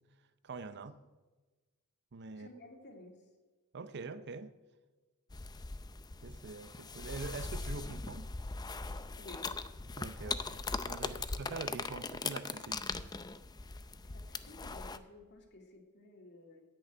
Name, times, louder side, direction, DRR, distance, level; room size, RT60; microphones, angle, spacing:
voice 1, 0.4-1.0 2.1-2.5 3.7-4.5 6.2-8.3 10.0-12.9, right 4 dB, 50° right, 0.6 m, -44 dB
voice 2, 2.3-3.2 9.2-9.5 11.1-11.2 14.0-16.6, left 2 dB, 50° left, 2.2 m, -54 dB
sound 1, 5.3-15.0, left 3 dB, 20° left, 0.5 m, -40 dB
10.0 x 8.0 x 9.1 m
head